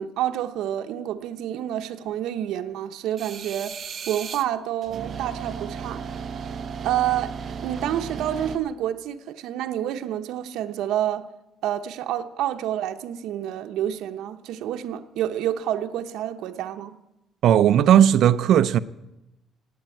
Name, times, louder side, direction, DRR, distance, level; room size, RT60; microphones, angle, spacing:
voice 1, 0.0-3.8 4.1-6.0 6.8-7.3 7.6-11.3 11.6-17.0, right 11 dB, 80° right, 0.9 m, -28 dB
sound 1, 3.2-4.5 4.8-8.6, right 6 dB, 35° right, 0.8 m, -35 dB
voice 2, 17.4-18.8, right 10 dB, 60° right, 0.5 m, -16 dB
17.5 x 8.8 x 9.0 m
cardioid pair, 155°, 0 cm